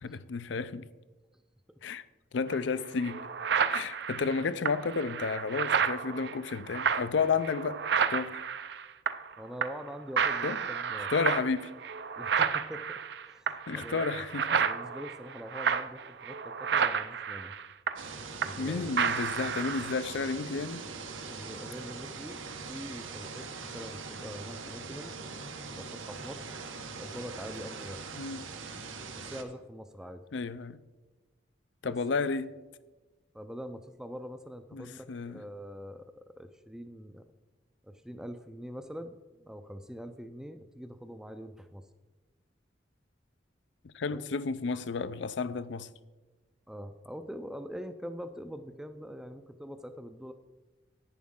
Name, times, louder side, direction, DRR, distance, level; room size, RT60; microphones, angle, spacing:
voice 1, 0.0-0.9 1.8-2.0 2.3-3.2 3.7-7.8 8.1-8.4 10.4-10.6 11.1-11.7 13.7-14.6 18.6-20.8 28.2-28.5 30.3-30.8 31.8-32.5 34.7-35.4 43.8-45.9, left 4 dB, 70° left, 0.5 m, -32 dB
sound 1, 2.5-2.6 3.0-9.3 9.6-9.9 10.2-18.7 19.0-20.0, right 6 dB, 60° right, 0.5 m, -31 dB
voice 2, 9.4-11.3 12.2-14.1 14.4-17.5 18.4-18.9 21.2-22.4 22.7-25.1 25.7-26.5 27.0-28.0 28.5-28.6 29.2-30.2 31.8-32.2 33.3-37.2 37.8-41.9 44.1-44.3 46.7-50.3, equal, 5° right, 0.4 m, -44 dB
sound 2, 18.0-29.4, right 4 dB, 85° right, 1.0 m, -42 dB
10.0 x 9.6 x 3.7 m
head